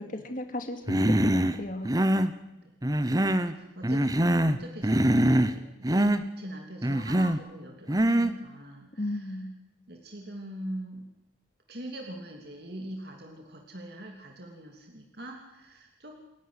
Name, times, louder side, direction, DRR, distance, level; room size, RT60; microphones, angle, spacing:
voice 1, 0.0-1.9 9.0-9.5, left 1 dB, 45° left, 6 dB, 2.5 m, -35 dB
Human voice, 0.9-1.6 1.8-2.3 2.8-3.5 3.8-4.6 4.8-5.6 5.8-6.2 6.8-7.4 7.9-8.3, right 1 dB, 20° right, 1.0 m, -23 dB
voice 2, 3.0-9.4 9.9-11.1 11.7-16.1, right 1 dB, 55° right, 1 dB, 3.0 m, -43 dB
28.5 x 11.0 x 9.7 m, 0.97 s
head